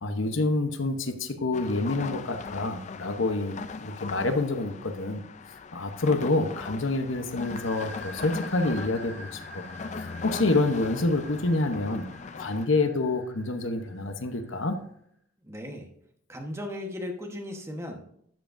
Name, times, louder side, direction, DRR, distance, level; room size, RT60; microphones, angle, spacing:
voice 1, 0.0-5.2 5.5-9.6 9.9-12.1 12.3-14.8, left 2 dB, 70° left, 7 dB, 0.9 m, -27 dB
sound 1, 1.5-12.7, left 4 dB, 35° left, 0.4 m, -40 dB
sound 2, 7.4-14.9, equal, 10° left, 1.3 m, -47 dB
voice 2, 15.4-15.9 16.3-18.0, left 1 dB, 15° right, 2 dB, 1.1 m, -36 dB
12.0 x 7.5 x 2.6 m, 0.69 s
head